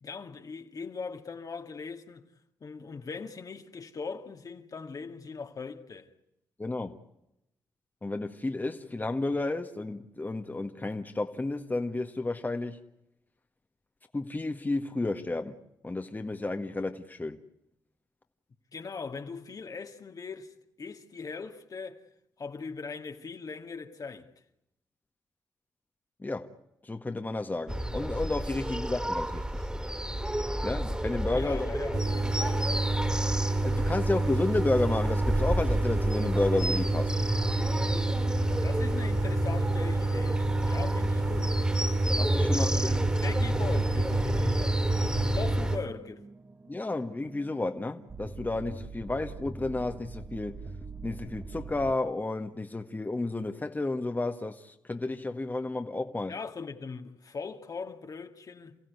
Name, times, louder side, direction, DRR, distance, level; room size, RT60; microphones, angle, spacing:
voice 1, 0.0-2.3 2.6-6.1 18.7-22.0 22.4-24.3 31.3-32.9 38.5-41.6 42.4-44.7 45.3-46.3 56.3-58.8, left 4 dB, 50° left, 2.2 m, -40 dB
voice 2, 6.6-7.0 8.0-12.8 14.1-15.6 15.8-17.4 26.2-26.5 26.8-29.4 30.6-31.7 33.6-37.1 42.2-42.9 46.7-50.6 51.0-56.3, left 2 dB, 25° left, 1.7 m, -31 dB
sound 1, 27.7-45.8, equal, 10° right, 2.8 m, -31 dB
sound 2, 31.9-45.9, right 2 dB, 55° right, 1.8 m, -29 dB
sound 3, 41.3-51.9, right 4 dB, 30° right, 1.7 m, -46 dB
29.0 x 15.5 x 9.6 m
supercardioid pair, 50°, 8 cm